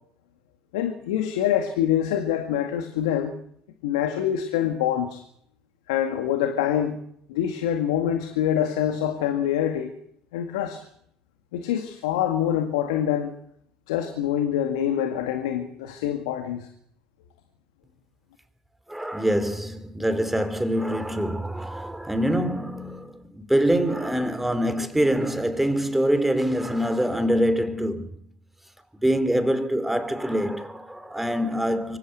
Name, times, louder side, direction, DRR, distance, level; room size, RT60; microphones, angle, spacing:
voice 1, 0.7-3.3 3.8-5.2 5.9-7.0 7.3-9.9 10.3-10.9 11.5-13.4 13.9-16.7, left 10 dB, 85° left, 2.0 m, -25 dB
voice 2, 18.9-28.1 29.0-32.0, equal, 5° right, 3.9 m, -24 dB
24.5 x 16.5 x 8.1 m
hypercardioid pair, 65°, 3 cm